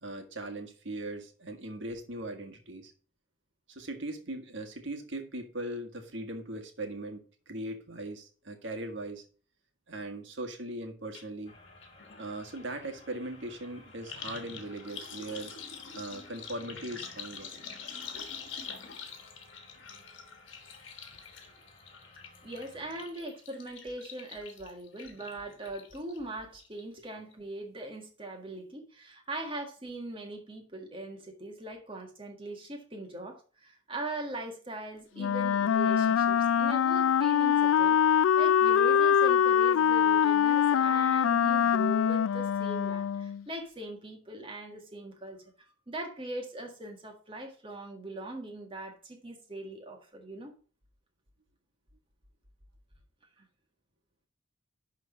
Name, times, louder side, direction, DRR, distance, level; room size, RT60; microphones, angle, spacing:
voice 1, 0.0-2.9 3.7-9.3 9.9-11.6 12.2-15.6 15.9-17.5 18.1-18.2, right 1 dB, 65° right, 1.7 m, -39 dB
sound 1, 11.1-11.3 11.5-26.2 26.6-27.1 27.3-27.4, left 6 dB, 70° left, 1.4 m, -46 dB
sound 2, 11.4-23.1, left 2 dB, 30° left, 2.6 m, -57 dB
voice 2, 22.4-45.4 45.9-50.5 53.4-53.5, right 1 dB, 25° right, 1.8 m, -41 dB
Wind instrument woodwind instrument, 35.2-43.4, left 8 dB, 85° left, 0.3 m, -24 dB
11.0 x 3.8 x 5.1 m
head